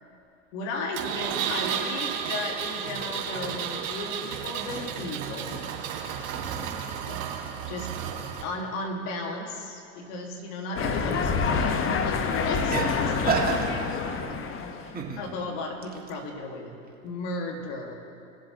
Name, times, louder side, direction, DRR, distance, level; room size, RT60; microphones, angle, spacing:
voice 1, 0.5-5.6 6.8-7.2 7.7-7.9 8.4-12.7 13.0-13.6 15.2-16.7 17.0-17.9, left 2 dB, 60° left, 2 dB, 1.9 m, -35 dB
Engine, 0.9-8.4, right 8 dB, 65° right, 2.2 m, -32 dB
voice 2, 6.3-6.8 12.3-14.4 14.9-15.2 15.9-16.2, right 5 dB, 20° right, -2 dB, 2.0 m, -32 dB
sound 1, 10.8-15.0, left 5 dB, 30° left, 1.0 m, -27 dB
21.5 x 7.5 x 2.9 m, 2.5 s
hypercardioid pair, 85°, 40 cm